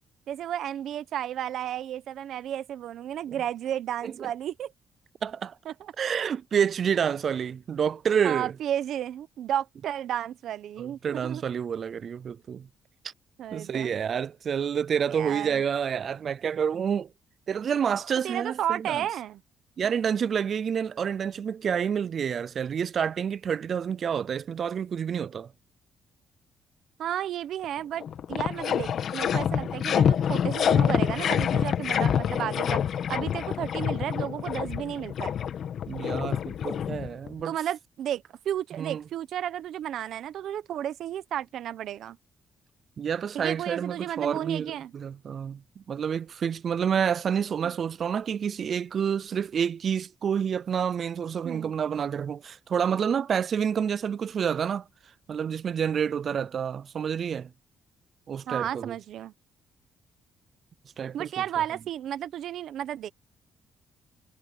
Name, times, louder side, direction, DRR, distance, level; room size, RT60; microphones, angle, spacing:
voice 1, 0.3-4.7 5.7-5.9 8.2-11.4 13.4-13.9 15.0-15.6 18.2-19.4 27.0-28.0 28.3-35.3 37.4-42.2 43.3-44.9 47.6-47.7 51.4-51.7 58.5-59.3 61.1-63.1, right 11 dB, 75° right, 1.0 m, -33 dB
voice 2, 5.2-5.6 6.0-8.5 10.8-12.7 13.5-17.1 17.5-19.1 19.8-25.5 29.5-29.7 35.9-37.5 38.8-39.0 43.0-54.8 55.3-57.5 58.3-58.9 61.0-61.3, right 7 dB, 55° right, 0.4 m, -28 dB
sound 1, 27.6-27.7 28.0-37.4, left 8 dB, 65° left, 1.4 m, -27 dB
cardioid pair, 90°, 0 cm